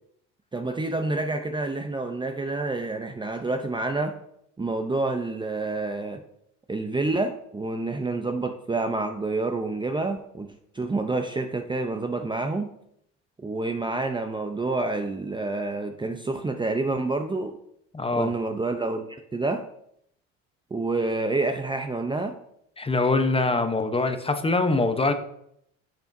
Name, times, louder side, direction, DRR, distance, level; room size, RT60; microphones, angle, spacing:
voice 1, 0.5-4.1 4.6-6.2 6.7-10.5 10.7-12.7 13.4-17.6 18.1-19.6 20.7-22.3, right 3 dB, 15° right, 6 dB, 0.7 m, -28 dB
voice 2, 17.9-18.3 22.8-25.1, left 3 dB, 15° left, 8 dB, 0.9 m, -23 dB
10.5 x 7.0 x 2.7 m, 0.73 s
supercardioid pair, 90°, 33 cm